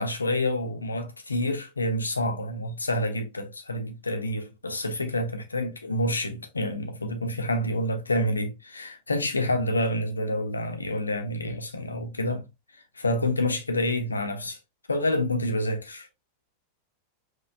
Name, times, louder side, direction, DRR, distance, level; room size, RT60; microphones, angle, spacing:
voice 1, 0.0-12.5 13.0-14.6 14.9-16.1, left 1 dB, 80° left, 1.0 m, -28 dB
5.5 x 3.8 x 2.5 m
figure-of-eight pair, 90°, 0 cm